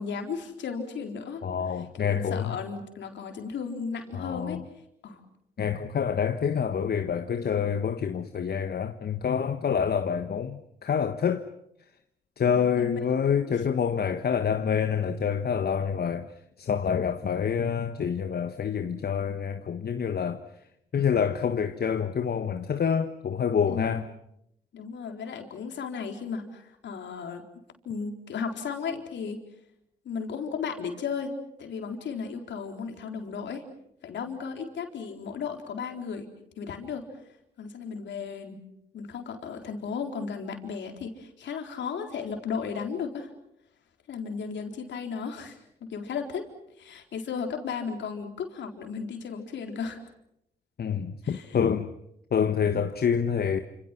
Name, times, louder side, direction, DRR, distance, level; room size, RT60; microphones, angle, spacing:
voice 1, 0.0-1.4 1.7-4.6 5.0-5.2 7.5-7.7 12.4-13.0 13.4-13.5 23.7-24.2 24.7-27.4 27.8-29.4 30.0-33.7 34.0-36.3 36.6-37.1 37.6-38.6 38.9-43.3 44.1-45.6 45.9-46.5 46.8-50.0 51.2-51.6, left 6 dB, 70° left, 4.1 m, -35 dB
voice 2, 1.4-2.6 4.1-4.6 5.6-11.5 12.4-16.3 16.6-20.4 20.9-24.1 50.8-51.9 52.3-53.6, left 7 dB, 55° left, 1.4 m, -27 dB
28.5 x 27.5 x 6.0 m
hypercardioid pair, 45°, 19 cm